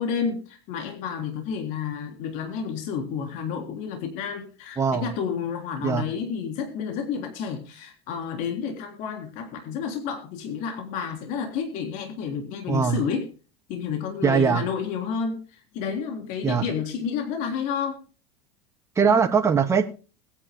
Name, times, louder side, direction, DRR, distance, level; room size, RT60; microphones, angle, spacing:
voice 1, 0.0-13.3 13.7-18.0, left 6 dB, 60° left, 3 dB, 3.5 m, -30 dB
voice 2, 4.8-5.1 5.8-6.0 12.7-13.0 14.2-14.6 16.4-16.6 19.0-19.9, right 6 dB, 20° right, 3 dB, 2.4 m, -21 dB
21.5 x 9.9 x 2.2 m, 0.35 s
supercardioid pair, 120°, 15 cm